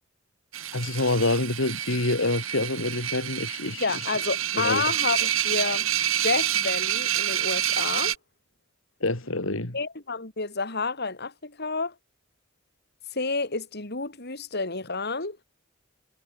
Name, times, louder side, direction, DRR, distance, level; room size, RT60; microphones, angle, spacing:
sound 1, 0.5-8.2, right 11 dB, 85° right, 3.7 m, -28 dB
voice 1, 0.7-3.8 4.5-4.8 9.0-9.7, left 2 dB, 75° left, 2.9 m, -26 dB
voice 2, 3.8-5.9 6.2-8.1 9.7-11.9 13.1-15.4, left 4 dB, 55° left, 5.1 m, -29 dB
head